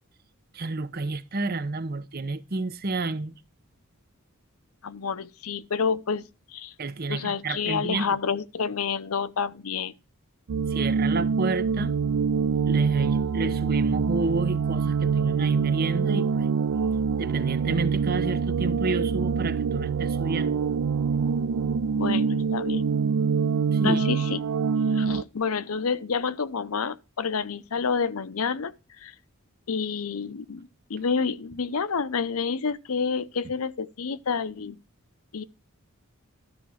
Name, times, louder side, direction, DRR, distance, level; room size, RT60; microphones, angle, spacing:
voice 1, 0.5-3.3 6.8-8.2 10.7-11.9 12.7-16.5 17.2-20.6 23.7-24.0, right 3 dB, 45° right, 0.9 m, -30 dB
voice 2, 4.8-6.2 6.5-6.7 7.1-9.9 22.0-22.8 23.8-24.4 24.9-29.1 29.7-34.8 35.3-35.4, left 5 dB, 80° left, 0.7 m, -29 dB
sound 1, 10.5-25.2, right 6 dB, 85° right, 0.4 m, -25 dB
12.5 x 4.2 x 6.3 m
head